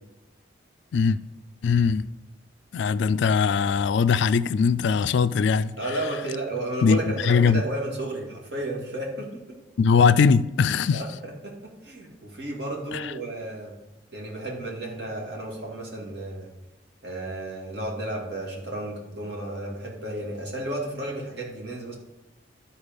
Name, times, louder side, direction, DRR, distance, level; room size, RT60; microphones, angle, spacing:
voice 1, 1.6-2.1 2.7-5.7 6.8-7.6 9.8-11.0 12.9-13.1, left 5 dB, 65° left, 0.3 m, -21 dB
voice 2, 5.8-9.6 10.7-13.8 14.1-16.5 17.0-21.9, right 1 dB, 55° right, 2.2 m, -33 dB
11.5 x 4.4 x 5.2 m
head